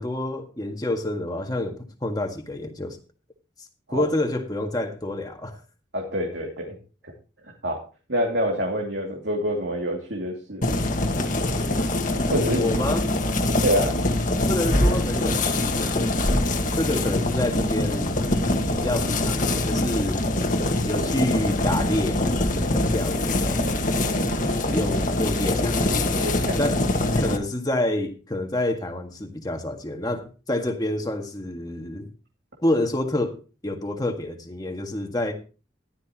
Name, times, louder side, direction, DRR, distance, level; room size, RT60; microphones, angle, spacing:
voice 1, 0.0-3.0 3.9-5.6 12.6-13.1 14.5-16.1 16.8-18.1 18.7-20.2 20.8-23.6 24.7-26.8 27.2-32.1 32.6-33.4 33.6-35.3, left 1 dB, 20° left, 4 dB, 1.8 m, -28 dB
voice 2, 5.9-6.7 7.6-7.8 8.1-10.8 12.0-12.8 13.6-13.9 24.3-24.4 24.7-24.8 25.9-26.7, equal, 65° right, 0 dB, 2.6 m, -27 dB
sound 1, 10.6-27.4, left 2 dB, 40° left, 1.6 m, -24 dB
14.5 x 12.0 x 3.0 m, 0.34 s
head